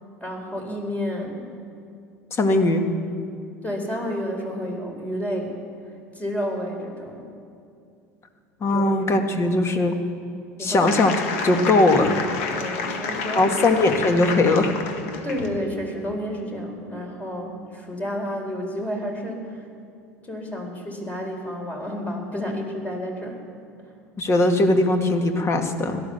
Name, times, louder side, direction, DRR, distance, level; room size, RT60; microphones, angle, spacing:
voice 1, 0.2-1.5 3.6-5.6 5.8-7.2 8.6-9.0 9.4-9.6 10.6-10.9 12.6-13.6 15.2-19.7 20.2-23.4 23.8-23.9, equal, 20° left, 2 dB, 4.3 m, -31 dB
voice 2, 2.4-2.8 8.6-9.9 10.6-11.1 11.4-12.2 13.3-14.7 24.2-26.0, left 2 dB, 35° left, 6 dB, 1.9 m, -19 dB
sound 1, 10.9-15.6, left 5 dB, 70° left, 1.7 m, -30 dB
17.0 x 12.0 x 6.9 m, 2.5 s
hypercardioid pair, 75°, 8 cm